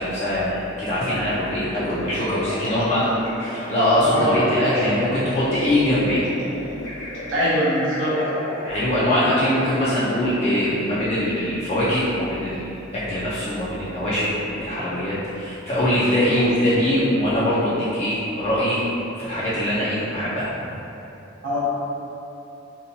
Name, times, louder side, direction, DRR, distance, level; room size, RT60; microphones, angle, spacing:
voice 1, 0.0-3.1 3.4-6.3 8.7-18.8 19.2-20.7, left 1 dB, 30° left, -11 dB, 0.4 m, -22 dB
sound 1, 0.9-11.3, equal, 60° left, 0.8 m, -33 dB
voice 2, 4.0-4.4 7.3-8.2 21.4-21.6, equal, 70° right, -8 dB, 0.7 m, -22 dB
2.8 x 2.2 x 2.6 m, 2.9 s
head